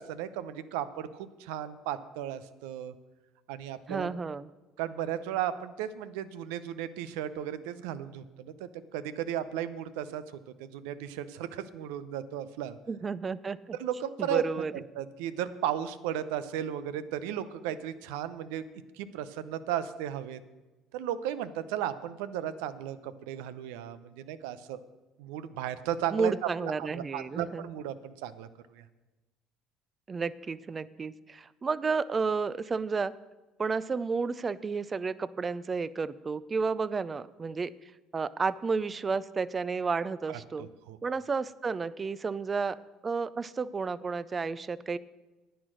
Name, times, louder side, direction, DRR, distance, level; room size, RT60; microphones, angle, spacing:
voice 1, 0.0-2.9 3.5-4.1 4.8-10.2 10.6-12.8 13.8-14.4 14.7-18.6 18.9-20.4 20.9-24.8 25.2-26.3 26.6-28.5 28.7-28.8 40.3-41.0, right 10 dB, 80° right, 13 dB, 0.6 m, -35 dB
voice 2, 3.9-4.5 12.9-13.8 14.2-14.7 26.1-27.7 30.1-33.1 33.6-40.7 41.0-42.8 43.0-45.0, right 4 dB, 30° right, 17 dB, 0.5 m, -32 dB
10.0 x 9.2 x 6.3 m, 1.1 s
supercardioid pair, 75°, 0 cm